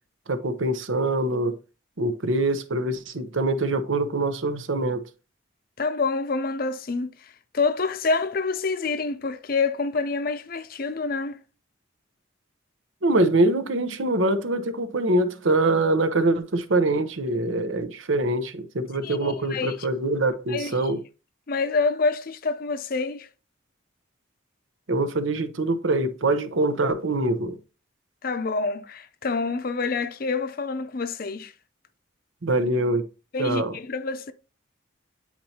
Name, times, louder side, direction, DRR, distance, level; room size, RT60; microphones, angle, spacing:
voice 1, 0.3-1.6 2.0-5.1 13.0-21.0 24.9-27.6 32.4-33.0 33.4-33.7, right 2 dB, 80° right, 0.8 m, -24 dB
voice 2, 5.8-11.4 19.0-19.7 20.5-20.8 21.5-23.3 28.2-31.5 33.3-34.3, left 4 dB, 50° left, 0.6 m, -27 dB
9.3 x 4.4 x 2.8 m
head